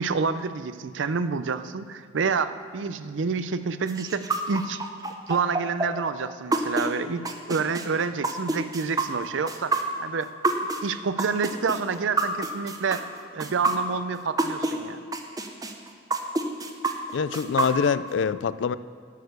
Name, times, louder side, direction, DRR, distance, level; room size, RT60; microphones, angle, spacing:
voice 1, 0.0-4.8 5.3-9.7 10.0-10.3 10.8-13.0 13.3-15.0, right 5 dB, 85° right, 12 dB, 0.5 m, -28 dB
sound 1, 3.9-14.7 15.1-18.1, right 3 dB, 20° right, 0.7 m, -27 dB
voice 2, 17.1-18.8, left 6 dB, 80° left, 16 dB, 0.3 m, -25 dB
11.5 x 6.6 x 6.6 m, 2.2 s
head